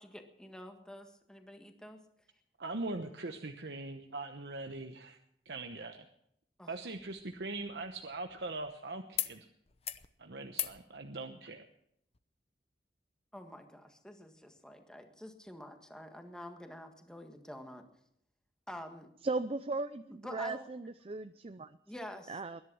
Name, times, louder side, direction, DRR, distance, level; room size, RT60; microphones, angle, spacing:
voice 1, 0.0-2.0 6.6-6.7 13.3-17.9 18.7-19.1 20.2-20.7 21.9-22.4, left 1 dB, 5° left, 4 dB, 1.7 m, -48 dB
voice 2, 2.6-5.2 5.5-6.1 6.7-9.5 10.2-11.6, right 2 dB, 70° right, 5 dB, 1.0 m, -41 dB
sound 1, 7.0-8.7 9.1-9.4 9.7-10.1 10.5-10.8 12.1-12.2, left 10 dB, 35° left, 0.8 m, -41 dB
voice 3, 19.2-21.8 22.3-22.6, right 3 dB, 35° right, 11 dB, 0.5 m, -37 dB
21.0 x 11.0 x 6.3 m, 0.75 s
head